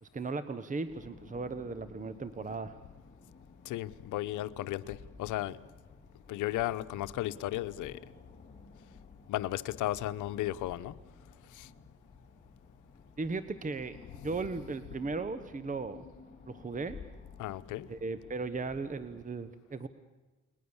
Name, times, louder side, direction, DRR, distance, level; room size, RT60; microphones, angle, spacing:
voice 1, 0.0-2.8 13.2-14.0 14.2-16.0 16.5-17.0 17.9-19.9, right 3 dB, 25° right, 1.2 m, -37 dB
sound 1, 0.9-19.2, left 4 dB, 20° left, 4.3 m, -54 dB
voice 2, 3.6-5.6 6.3-8.0 9.3-10.9 11.5-11.7 17.4-17.9, left 15 dB, 90° left, 1.0 m, -35 dB
29.5 x 21.5 x 7.2 m
cardioid pair, 90°, 30 cm